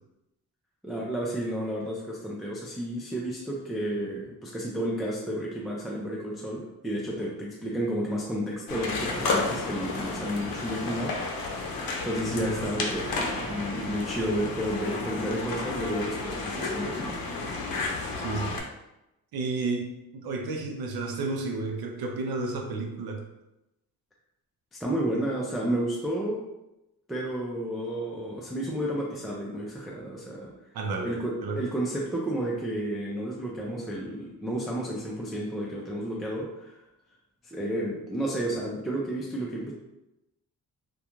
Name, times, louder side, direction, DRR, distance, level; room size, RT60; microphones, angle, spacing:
voice 1, 0.8-11.2 12.0-17.2 24.7-26.4 27.1-30.5 31.0-36.7 37.4-39.7, right 1 dB, ahead, -4 dB, 0.3 m, -31 dB
sound 1, 8.7-18.6, left 3 dB, 70° left, 0.6 m, -32 dB
voice 2, 18.2-18.6 19.3-23.2 30.7-31.6, right 3 dB, 80° right, 2 dB, 0.5 m, -32 dB
2.3 x 2.2 x 2.9 m, 0.93 s
cardioid pair, 105°, 36 cm